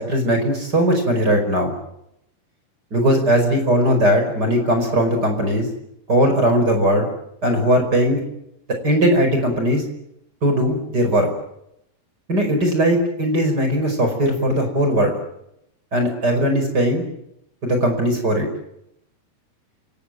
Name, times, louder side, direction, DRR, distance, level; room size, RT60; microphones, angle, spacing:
voice 1, 0.0-1.7 2.9-5.7 6.1-7.1 7.4-8.2 8.8-9.8 10.4-11.3 12.3-15.1 15.9-17.0 17.6-18.5, equal, 25° right, 5 dB, 5.3 m, -19 dB
29.5 x 17.5 x 9.4 m, 0.80 s
omnidirectional pair, 4.8 m